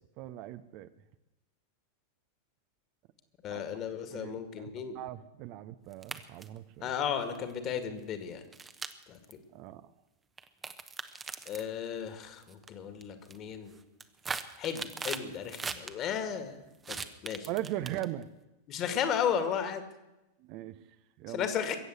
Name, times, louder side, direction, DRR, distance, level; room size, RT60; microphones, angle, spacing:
voice 1, 0.2-0.9 3.5-3.6 4.1-6.9 9.5-9.9 17.5-18.3 20.4-20.8 21.2-21.5, right 14 dB, 45° right, 13 dB, 0.7 m, -39 dB
voice 2, 3.4-5.0 6.8-8.4 9.1-9.4 11.5-13.8 14.6-16.6 16.9-17.0 17.2-17.5 18.7-19.8 21.3-21.8, left 8 dB, 35° left, 9 dB, 2.1 m, -34 dB
sound 1, 5.9-6.6 7.4-7.5 8.5-9.3 10.4-11.7 12.4-12.7 13.0-13.4 13.8-15.9 16.8-18.2, right 5 dB, 15° right, 1.0 m, -39 dB
22.5 x 8.0 x 8.1 m, 0.99 s
figure-of-eight pair, 90°, 0 cm